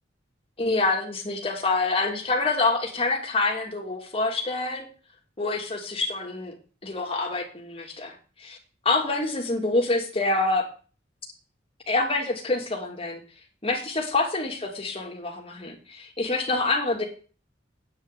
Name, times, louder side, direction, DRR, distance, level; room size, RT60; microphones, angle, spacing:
voice 1, 0.6-4.9 5.4-6.6 6.8-8.6 8.8-10.6 11.9-13.2 13.6-17.1, left 3 dB, 30° left, 1 dB, 2.5 m, -26 dB
9.3 x 5.8 x 8.3 m, 0.38 s
head